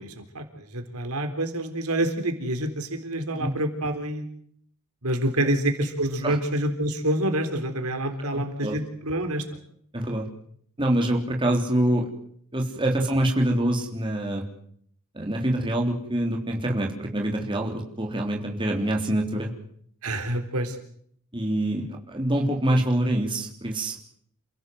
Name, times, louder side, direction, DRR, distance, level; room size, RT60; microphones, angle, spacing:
voice 1, 0.0-4.2 5.0-9.5 20.0-20.8, right 1 dB, 90° right, 6 dB, 3.8 m, -27 dB
voice 2, 8.3-8.8 9.9-10.3 10.8-12.1 12.5-14.4 15.1-19.5 21.3-24.0, right 1 dB, 20° right, 0 dB, 3.5 m, -25 dB
28.5 x 17.0 x 7.9 m, 0.65 s
head